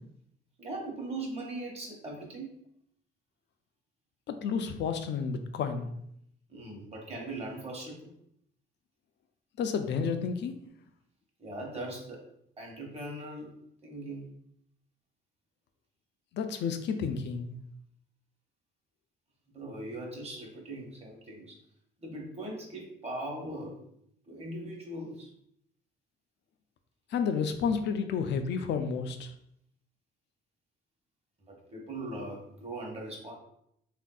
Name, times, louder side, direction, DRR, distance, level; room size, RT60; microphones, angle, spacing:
voice 1, 0.6-2.5 6.5-8.1 11.4-12.2 12.6-13.5 13.8-14.3 19.5-21.6 22.0-23.8 24.3-25.3 31.4-33.3, right 1 dB, 30° right, -1 dB, 1.0 m, -40 dB
voice 2, 4.3-5.9 9.6-10.6 16.3-17.5 27.1-29.3, left 6 dB, 65° left, 8 dB, 0.4 m, -31 dB
3.4 x 2.5 x 2.2 m, 0.73 s
cardioid pair, 90°, 20 cm